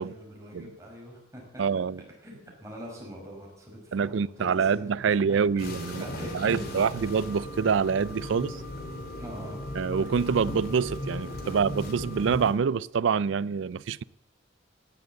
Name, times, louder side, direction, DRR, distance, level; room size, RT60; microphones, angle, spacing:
voice 1, 0.0-1.6 2.2-5.4 6.0-6.8 9.2-9.6, equal, 15° right, 5.3 m, -43 dB
voice 2, 1.6-2.0 3.9-6.1 6.3-8.6 9.7-14.0, right 6 dB, 75° right, 0.4 m, -26 dB
sound 1, 5.6-12.5, left 1 dB, 55° left, 2.6 m, -37 dB
17.5 x 7.8 x 7.7 m
head